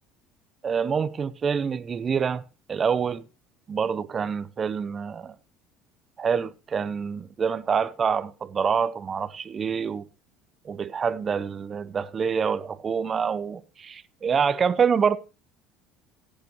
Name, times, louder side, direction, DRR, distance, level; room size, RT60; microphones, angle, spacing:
voice 1, 0.6-2.4 2.7-3.2 3.7-5.3 6.2-10.0 10.6-15.2, right 6 dB, 35° right, 0.8 m, -26 dB
17.0 x 8.8 x 3.0 m
supercardioid pair, 85°, 0 cm